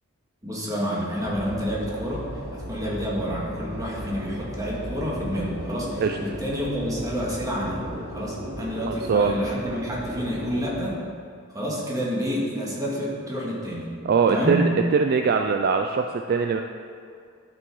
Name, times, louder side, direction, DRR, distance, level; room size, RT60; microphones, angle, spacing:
voice 1, 0.4-2.3 2.7-11.0 11.5-13.9 14.3-14.7, equal, 15° right, -5 dB, 2.0 m, -29 dB
sound 1, 1.2-10.8, equal, 65° right, 2.2 m, -36 dB
voice 2, 8.9-9.4 14.0-16.6, right 5 dB, 45° right, 5 dB, 0.4 m, -22 dB
12.5 x 6.2 x 4.7 m, 2.3 s
head